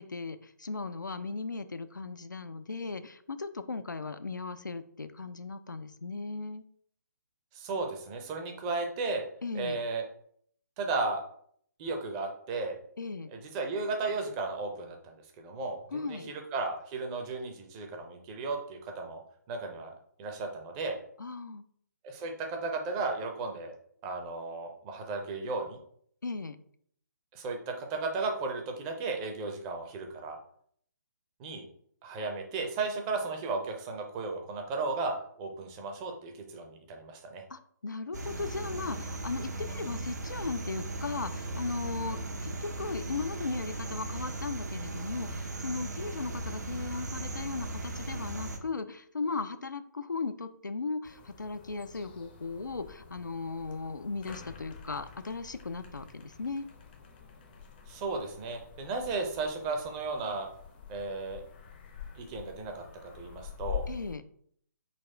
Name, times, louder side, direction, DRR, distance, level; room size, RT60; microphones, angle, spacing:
voice 1, 0.0-6.7 9.4-9.8 13.0-13.3 15.9-16.3 21.2-21.6 26.2-26.6 37.5-56.7 63.9-64.3, left 4 dB, 80° left, 11 dB, 0.4 m, -37 dB
voice 2, 7.5-9.2 9.5-10.0 10.8-11.2 11.8-12.8 13.3-19.2 19.5-19.9 20.2-21.0 22.0-23.7 24.0-25.8 27.3-30.4 31.4-31.6 32.0-37.4 57.9-60.5 60.9-61.4 62.2-63.8, right 3 dB, 20° right, 3 dB, 0.6 m, -35 dB
sound 1, 38.1-48.6, right 2 dB, 65° right, 0.8 m, -37 dB
sound 2, 51.0-64.2, left 7 dB, 30° left, 0.5 m, -46 dB
4.0 x 2.4 x 4.3 m, 0.62 s
figure-of-eight pair, 135°, 10 cm